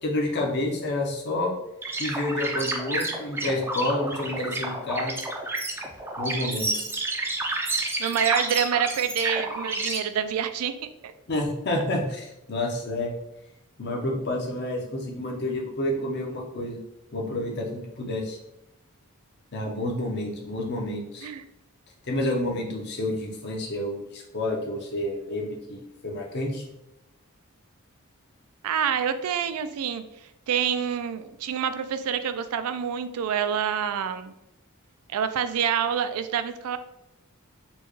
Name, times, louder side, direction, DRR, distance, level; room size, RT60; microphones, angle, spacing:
voice 1, 0.0-1.5 2.0-5.2 6.2-6.9 11.3-13.1 13.8-16.8 17.1-18.4 19.5-21.3 22.0-26.6, left 1 dB, 50° left, 0 dB, 0.8 m, -29 dB
sound 1, 1.8-10.0, right 2 dB, 10° right, 0.4 m, -30 dB
voice 2, 8.0-11.1 21.2-21.4 28.6-30.0 30.5-34.3 35.1-36.8, right 8 dB, 80° right, 11 dB, 0.3 m, -27 dB
4.3 x 2.2 x 3.1 m, 0.88 s
head